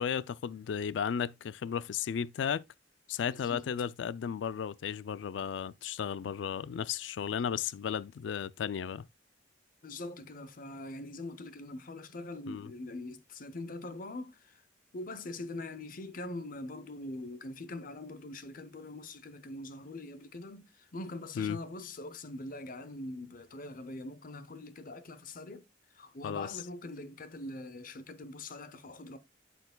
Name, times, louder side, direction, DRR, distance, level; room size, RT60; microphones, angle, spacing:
voice 1, 0.0-2.6 3.1-9.1 12.5-12.7 21.4-21.6 26.2-26.5, left 7 dB, 80° left, 0.3 m, -34 dB
voice 2, 3.2-3.6 9.8-14.6 14.9-29.2, left 2 dB, 50° left, 0.7 m, -43 dB
11.5 x 4.6 x 2.2 m
head